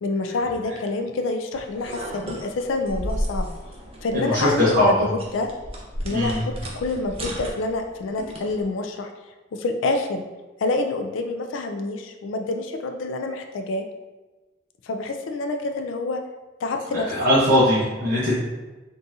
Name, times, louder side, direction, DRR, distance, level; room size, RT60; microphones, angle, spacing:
voice 1, 0.0-3.5 4.0-5.5 6.0-9.1 9.5-10.2 10.6-13.8 14.8-16.2 16.6-17.1, left 2 dB, 80° left, 5 dB, 0.4 m, -27 dB
sound 1, 1.5-8.6, equal, 30° right, 0.5 m, -34 dB
voice 2, 4.1-5.1 6.1-6.4 16.9-18.4, left 1 dB, 50° right, -11 dB, 0.9 m, -20 dB
3.9 x 2.4 x 2.7 m, 1.2 s
head